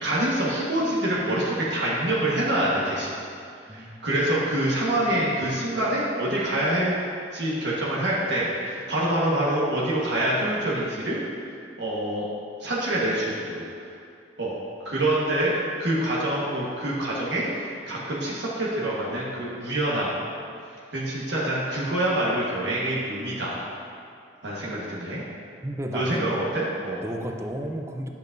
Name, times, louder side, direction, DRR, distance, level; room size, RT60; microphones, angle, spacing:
voice 1, 0.0-3.2 3.7-7.0 7.3-11.2 11.8-12.2 12.6-13.6 14.4-14.5 14.8-20.1 20.9-23.7 24.4-25.2 25.9-27.0, right 1 dB, 75° right, -6 dB, 1.4 m, -26 dB
voice 2, 25.6-26.3 27.0-28.1, right 1 dB, 15° right, 3 dB, 0.6 m, -32 dB
10.5 x 8.3 x 2.6 m, 2.4 s
head